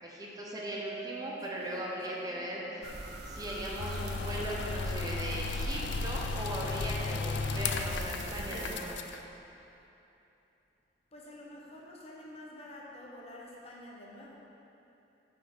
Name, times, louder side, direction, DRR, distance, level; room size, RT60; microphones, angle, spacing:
voice 1, 0.0-2.6 3.3-9.0, equal, 20° right, -3 dB, 0.9 m, -38 dB
Mallet percussion, 0.5-2.8, right 11 dB, 40° right, 1.4 m, -46 dB
voice 2, 1.6-2.6 11.1-14.3, left 1 dB, 35° left, -3 dB, 0.9 m, -49 dB
sound 1, 2.8-8.9, right 1 dB, 65° right, 0.7 m, -43 dB
sound 2, 3.8-9.2, left 4 dB, 85° left, 0.4 m, -35 dB
6.0 x 4.8 x 6.1 m, 3.0 s
head